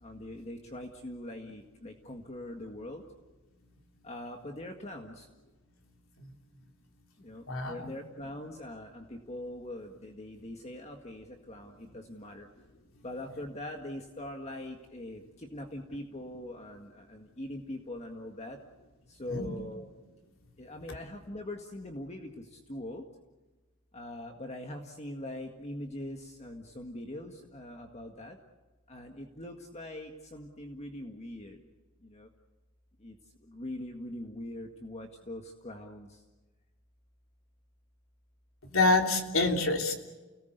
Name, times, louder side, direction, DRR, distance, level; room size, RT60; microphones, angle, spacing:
voice 1, 0.0-3.0 4.0-5.3 7.2-12.5 13.0-18.6 19.1-19.9 20.6-23.0 23.9-28.4 28.9-31.6 32.0-32.3 33.0-33.2 33.5-36.1, left 1 dB, 35° left, 3 dB, 1.8 m, -42 dB
voice 2, 7.5-7.9 19.3-19.5 38.7-39.9, left 2 dB, 80° left, 3 dB, 3.4 m, -26 dB
29.5 x 18.5 x 8.1 m, 1.2 s
head